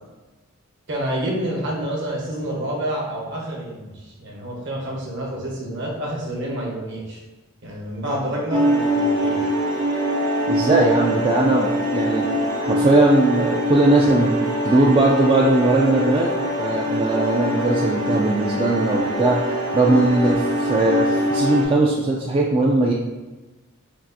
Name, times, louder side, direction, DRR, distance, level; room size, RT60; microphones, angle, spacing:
voice 1, 0.9-7.2 7.6-9.5, right 1 dB, 55° right, -2 dB, 1.0 m, -28 dB
sound 1, 8.5-21.6, equal, 85° right, 1.0 m, -23 dB
voice 2, 10.5-12.3 12.6-16.3 16.6-19.4 19.7-22.9, right 2 dB, 25° right, -3 dB, 0.3 m, -19 dB
5.8 x 2.4 x 2.7 m, 1.2 s
head